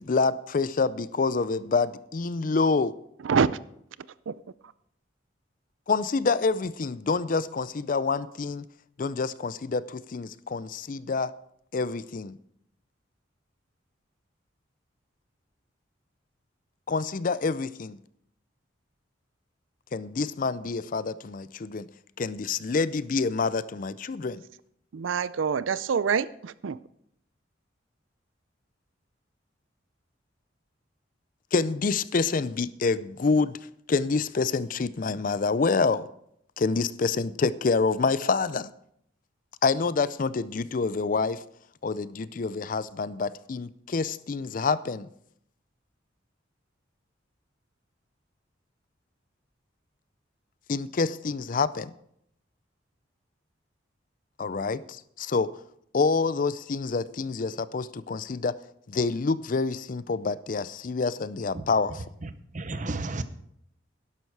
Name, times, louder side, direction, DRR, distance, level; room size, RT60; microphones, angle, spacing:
voice 1, 0.0-2.9 5.9-8.6 9.0-11.3 11.7-12.4 16.9-18.0 19.9-21.9 22.2-24.4 31.5-33.6 33.9-36.1 36.6-38.7 39.6-41.4 41.8-45.1 50.7-51.9 54.4-55.5 55.9-58.5 58.9-62.0, left 4 dB, 45° left, 0.4 m, -27 dB
voice 2, 3.2-3.6 24.9-26.8, right 6 dB, 85° right, 0.5 m, -25 dB
voice 3, 62.2-63.2, right 2 dB, 40° right, 0.8 m, -33 dB
12.0 x 11.0 x 4.7 m
head